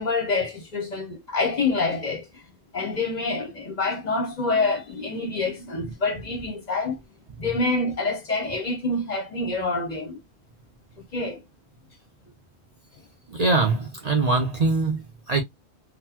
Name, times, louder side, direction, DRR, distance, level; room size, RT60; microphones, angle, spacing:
voice 1, 0.0-2.4 2.7-7.0 7.4-10.2 11.1-11.4, left 3 dB, 45° left, 0.7 m, -26 dB
voice 2, 13.3-15.0 15.3-15.4, right 3 dB, 45° right, 0.5 m, -22 dB
3.9 x 2.0 x 2.7 m
omnidirectional pair, 1.1 m